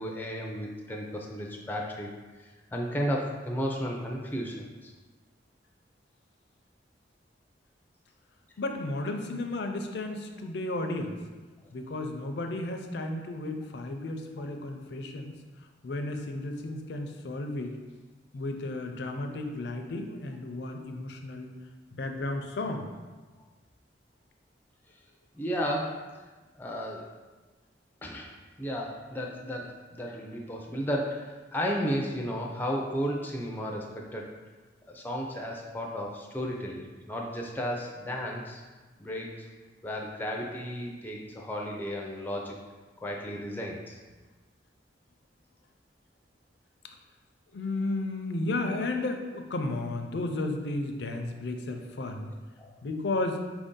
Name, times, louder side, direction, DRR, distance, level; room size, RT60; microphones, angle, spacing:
voice 1, 0.0-2.1 2.7-4.9 25.3-26.0 26.5-27.1 28.0-28.3 28.6-34.3 34.9-38.6 39.0-39.5 39.8-42.6 43.0-44.0 52.6-52.7, equal, 10° left, -1 dB, 0.4 m, -33 dB
voice 2, 8.6-11.2 11.7-15.4 15.8-17.8 18.3-21.5 21.9-22.9 47.5-52.3 52.8-53.4, left 2 dB, 70° left, 5 dB, 0.5 m, -33 dB
4.5 x 2.6 x 3.7 m, 1.3 s
head